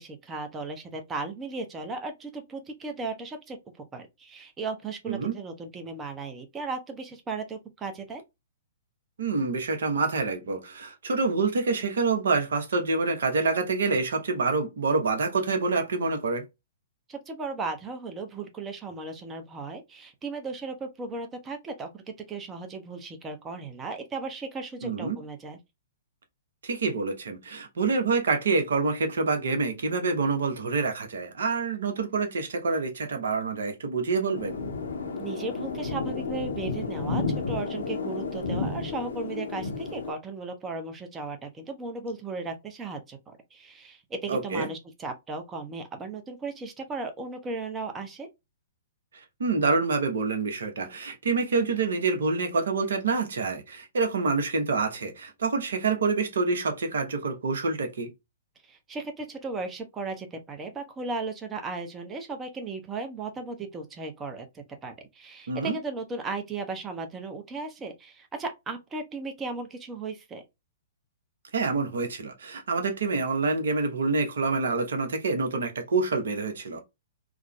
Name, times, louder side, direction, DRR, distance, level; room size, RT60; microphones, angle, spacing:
voice 1, 0.0-3.6 3.9-8.2 17.1-25.6 35.2-48.3 58.6-70.4, right 3 dB, 15° right, 0.6 m, -36 dB
voice 2, 9.2-16.4 24.8-25.2 26.6-34.6 44.3-44.7 49.4-58.1 65.5-65.8 71.5-76.8, right 4 dB, 60° right, 0.7 m, -27 dB
sound 1, 34.3-40.1, left 4 dB, 65° left, 0.6 m, -32 dB
3.5 x 2.0 x 2.2 m
figure-of-eight pair, 115°, 0 cm